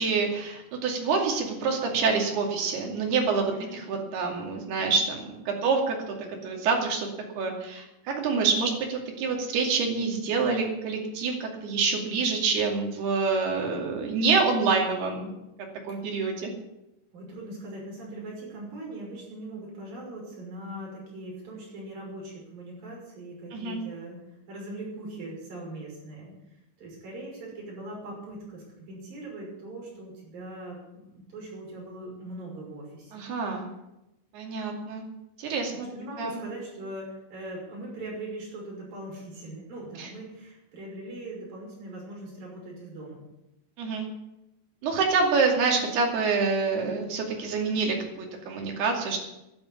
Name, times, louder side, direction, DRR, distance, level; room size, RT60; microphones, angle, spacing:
voice 1, 0.0-3.5 3.9-7.1 7.4-15.3 15.9-16.5 23.5-23.8 33.1-33.7 34.3-35.0 35.4-35.9 36.2-36.3 40.0-40.1 43.8-44.1 44.8-49.3, right 4 dB, 85° right, 1 dB, 4.6 m, -27 dB
voice 2, 17.1-24.2 24.5-26.3 26.8-33.3 35.7-43.2, right 1 dB, 65° right, -2 dB, 7.7 m, -40 dB
12.0 x 11.0 x 8.7 m, 0.92 s
omnidirectional pair, 4.5 m